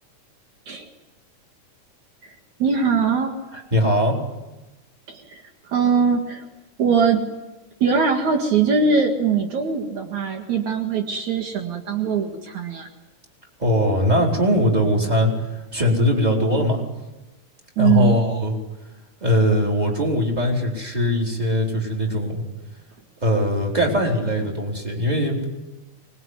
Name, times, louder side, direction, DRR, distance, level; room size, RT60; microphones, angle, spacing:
voice 1, 2.6-3.3 5.1-5.4 5.7-6.5 6.8-7.3 7.8-12.9 17.8-18.2, right 6 dB, 65° right, 3 dB, 3.1 m, -21 dB
voice 2, 3.5-4.2 13.6-15.3 15.7-16.8 17.8-18.5 19.2-22.4 23.2-25.5, equal, 10° right, 0 dB, 4.3 m, -20 dB
25.0 x 21.5 x 9.8 m, 1.0 s
omnidirectional pair, 3.7 m